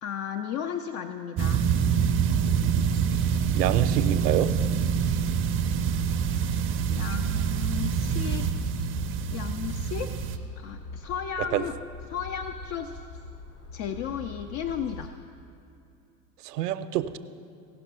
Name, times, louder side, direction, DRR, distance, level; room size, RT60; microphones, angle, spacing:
voice 1, 0.0-1.7 6.2-6.3 6.9-8.5 9.3-10.1 10.6-11.8 12.1-12.9 13.7-15.1, left 8 dB, 35° left, 7 dB, 0.4 m, -34 dB
sound 1, 1.4-10.4, right 7 dB, 25° right, 0.5 m, -26 dB
sound 2, 1.6-15.1, left 3 dB, 70° left, 2.1 m, -41 dB
voice 2, 2.5-3.0 3.5-4.5 11.5-11.6 16.4-17.2, right 12 dB, 70° right, 11 dB, 0.7 m, -27 dB
16.0 x 5.9 x 5.5 m, 2.7 s
hypercardioid pair, 90°, 49 cm